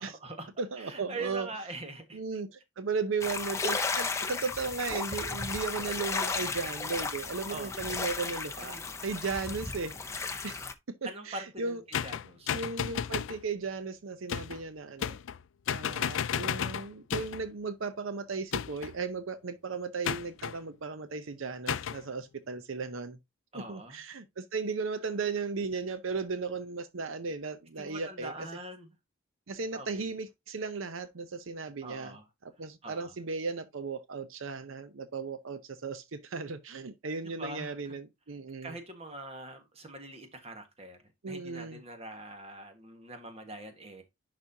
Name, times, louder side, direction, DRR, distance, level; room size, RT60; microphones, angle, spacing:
voice 1, 0.0-0.5 0.8-2.2 7.5-7.8 8.6-9.0 11.0-11.6 12.0-12.6 23.5-24.0 27.8-28.9 29.7-30.1 31.8-32.2 32.8-33.1 37.2-38.0 38.6-41.0 41.2-44.0, right 2 dB, 30° right, 1.5 m, -43 dB
voice 2, 0.6-1.5 2.1-9.9 10.4-10.6 10.9-11.8 12.5-15.2 15.7-23.2 23.7-28.3 29.5-32.2 32.4-38.8 41.2-41.8, right 4 dB, 75° right, 0.7 m, -36 dB
sound 1, 3.2-10.7, left 4 dB, 15° left, 0.5 m, -34 dB
sound 2, 11.9-13.4 14.3-14.6 15.0-15.4 15.7-17.5 18.5-19.0 20.0-20.6 21.7-22.0, left 8 dB, 70° left, 0.4 m, -33 dB
11.0 x 4.2 x 2.8 m
head